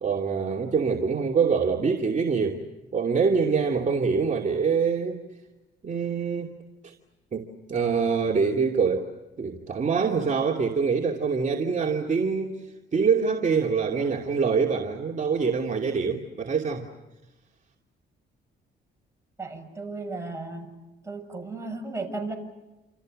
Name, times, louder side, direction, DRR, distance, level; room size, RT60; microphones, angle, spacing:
voice 1, 0.0-2.6 2.9-5.2 5.8-6.5 6.8-6.9 7.3-9.1 9.4-12.6 12.9-16.9, right 5 dB, 40° right, -1 dB, 2.7 m, -25 dB
voice 2, 19.4-20.7 21.0-22.3, right 3 dB, 15° right, 2 dB, 6.8 m, -35 dB
28.5 x 28.5 x 6.5 m, 1.1 s
cardioid pair, 90°, 20 cm